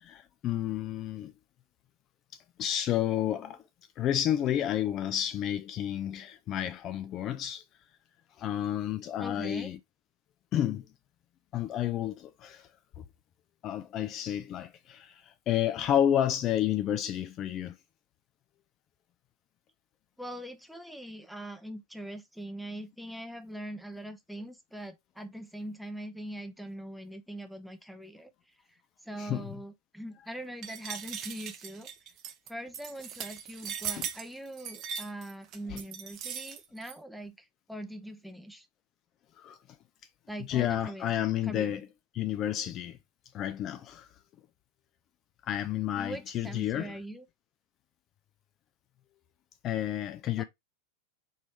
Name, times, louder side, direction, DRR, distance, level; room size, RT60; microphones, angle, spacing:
voice 1, 0.0-1.3 2.6-3.6 4.0-7.6 8.4-9.8 10.5-10.8 11.5-12.7 13.0-13.1 13.6-17.8 29.2-29.6 33.9-34.1 35.7-35.8 39.4-39.6 40.5-41.9 42.1-43.0 43.3-44.1 45.5-47.0 49.6-50.4, left 11 dB, 35° left, 0.4 m, -30 dB
voice 2, 9.2-9.7 20.2-28.3 29.0-31.9 32.5-37.4 37.7-38.7 40.3-41.8 46.0-47.3 50.4-50.5, right 1 dB, ahead, 0.7 m, -42 dB
sound 1, 30.6-36.9, right 8 dB, 35° right, 0.7 m, -39 dB
4.6 x 3.1 x 3.3 m
figure-of-eight pair, 90°, 0 cm